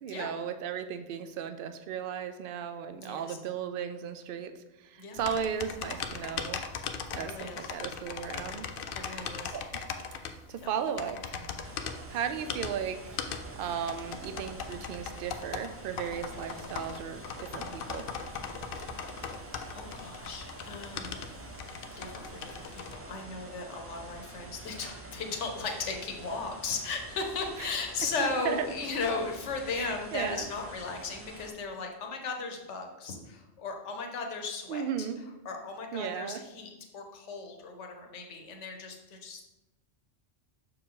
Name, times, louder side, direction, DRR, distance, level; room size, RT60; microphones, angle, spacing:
voice 1, 0.0-4.5 4.8-6.6 7.2-8.7 9.0-9.8 10.2-11.5 12.1-13.2 13.6-18.1 27.6-27.7 28.2-28.7 29.7-30.5 34.7-35.2 35.9-36.4, right 8 dB, 60° right, 10 dB, 0.6 m, -36 dB
voice 2, 2.9-3.4 5.0-5.2 7.1-7.7 8.9-9.6 10.6-10.7 18.8-21.2 21.9-35.1 35.4-39.4, left 4 dB, 80° left, 3 dB, 1.2 m, -37 dB
sound 1, 5.2-23.0, left 6 dB, 60° left, 0.6 m, -39 dB
sound 2, 11.6-31.5, right 2 dB, 20° right, 0.4 m, -47 dB
6.4 x 4.7 x 3.7 m, 1.0 s
omnidirectional pair, 1.2 m